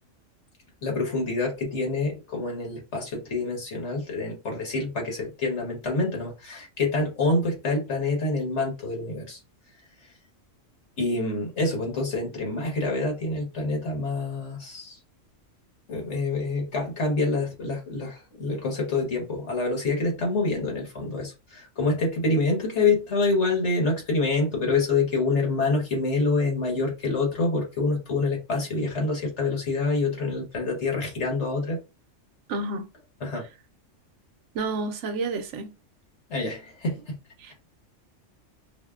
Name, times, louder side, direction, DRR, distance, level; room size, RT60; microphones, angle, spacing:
voice 1, 0.8-9.4 11.0-15.0 15.9-31.8 33.2-33.4 36.3-37.2, left 3 dB, 65° left, 1.5 m, -26 dB
voice 2, 32.5-32.9 34.5-35.7 37.4-37.5, right 3 dB, 75° right, 0.9 m, -30 dB
5.0 x 2.1 x 2.3 m
omnidirectional pair, 1.3 m